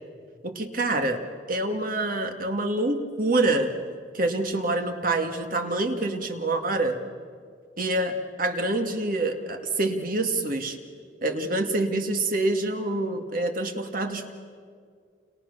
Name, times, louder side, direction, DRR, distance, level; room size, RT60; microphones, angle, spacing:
voice 1, 0.4-1.2 1.5-3.7 4.1-7.0 7.8-10.8 11.2-14.3, right 2 dB, 50° right, 5 dB, 2.2 m, -26 dB
29.0 x 29.0 x 6.8 m, 2.1 s
head